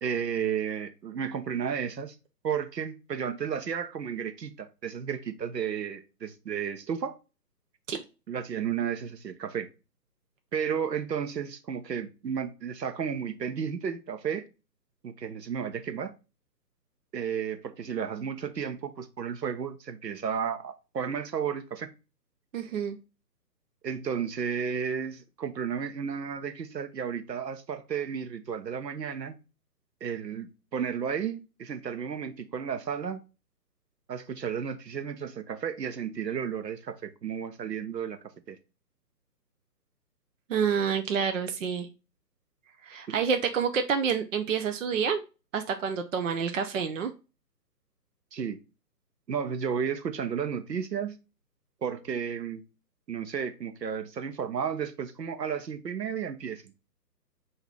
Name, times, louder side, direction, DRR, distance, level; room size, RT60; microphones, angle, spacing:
voice 1, 0.0-2.1 2.4-7.1 8.3-9.7 10.5-14.5 15.0-16.1 17.1-21.9 23.8-29.4 30.0-33.2 34.1-38.2 38.5-38.6 48.3-48.6 49.3-51.2 51.8-52.6 53.1-56.7, right 7 dB, 75° right, 1.0 m, -33 dB
voice 2, 22.5-23.0 40.5-41.9 42.8-45.2 45.5-47.1, right 6 dB, 50° right, 0.6 m, -28 dB
5.7 x 2.8 x 3.3 m
figure-of-eight pair, 145°, 50 cm